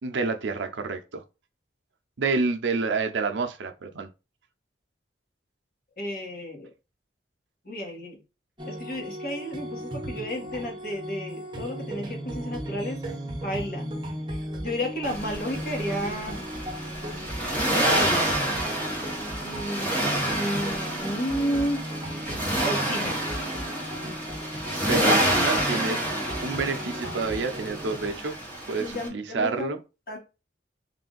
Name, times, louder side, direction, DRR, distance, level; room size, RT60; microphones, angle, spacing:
voice 1, 0.0-1.2 2.2-4.1 24.7-26.1 26.4-28.3 28.7-29.8, right 4 dB, 80° right, 0.6 m, -28 dB
voice 2, 6.0-6.7 7.6-8.2 8.7-13.0 13.4-13.9 14.3-16.4 17.7-18.5 19.4-21.8 22.0-22.3 22.6-23.2 28.8-29.8 30.1-30.2, equal, 50° left, 1.2 m, -32 dB
sound 1, 8.6-28.1, equal, 25° right, 0.9 m, -36 dB
Accelerating revving vroom, 15.0-29.1, right 1 dB, 10° left, 1.0 m, -28 dB
3.4 x 2.5 x 3.8 m
head